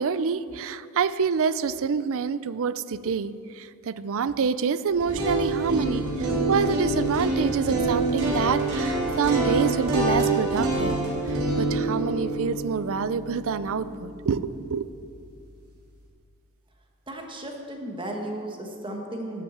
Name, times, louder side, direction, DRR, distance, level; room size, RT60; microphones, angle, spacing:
voice 1, 0.0-10.9 11.2-14.9, right 6 dB, 65° right, 15 dB, 0.4 m, -27 dB
sound 1, 4.9-14.9, right 2 dB, 85° right, 3.6 m, -27 dB
voice 2, 17.1-19.4, right 1 dB, 20° right, 2 dB, 1.3 m, -35 dB
13.0 x 8.5 x 7.1 m, 2.3 s
head